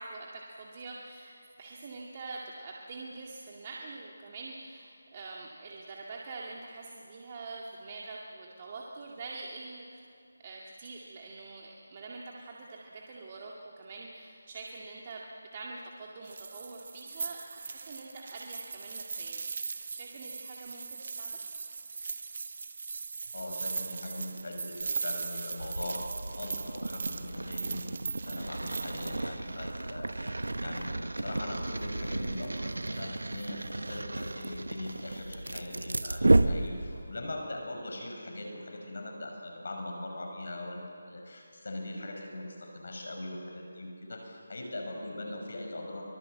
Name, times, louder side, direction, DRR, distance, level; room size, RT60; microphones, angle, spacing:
voice 1, 0.0-10.0 10.4-15.2 15.5-21.4, right 3 dB, 35° right, -2 dB, 2.2 m, -45 dB
sound 1, 16.3-29.2, right 4 dB, 50° right, 1.2 m, -39 dB
voice 2, 23.3-46.0, left 1 dB, 65° left, 2 dB, 6.0 m, -41 dB
sound 2, 25.6-37.2, right 2 dB, 85° right, 1.1 m, -32 dB
24.5 x 22.5 x 7.8 m, 2.5 s
figure-of-eight pair, 165°, 0 cm